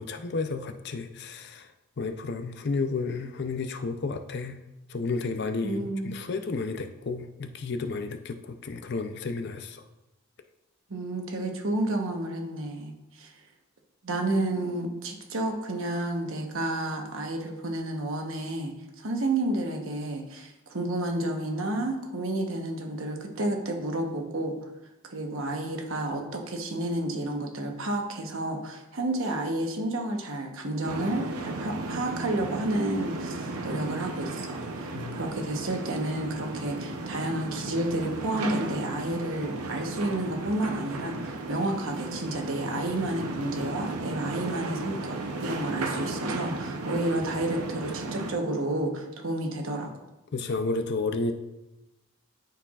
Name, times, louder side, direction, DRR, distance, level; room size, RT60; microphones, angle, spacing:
voice 1, 0.0-1.7 2.0-4.6 4.9-9.8 34.9-35.2 50.3-51.3, left 3 dB, 50° left, 8 dB, 0.5 m, -32 dB
voice 2, 5.6-6.2 10.9-13.3 14.0-24.6 25.0-49.9, right 1 dB, 65° right, 2 dB, 1.0 m, -31 dB
sound 1, 30.8-48.3, right 2 dB, 85° right, 0.7 m, -35 dB
12.0 x 4.6 x 2.4 m, 0.99 s
head